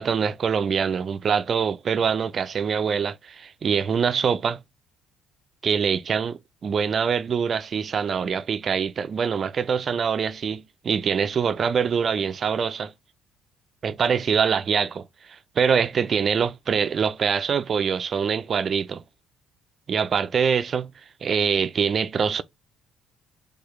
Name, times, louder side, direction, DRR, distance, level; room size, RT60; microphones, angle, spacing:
voice 1, 0.0-4.6 5.6-12.9 13.8-19.0 19.9-20.9 21.2-22.4, right 6 dB, 45° right, 0.3 m, -24 dB
4.4 x 2.3 x 3.0 m
hypercardioid pair, 50°, 0 cm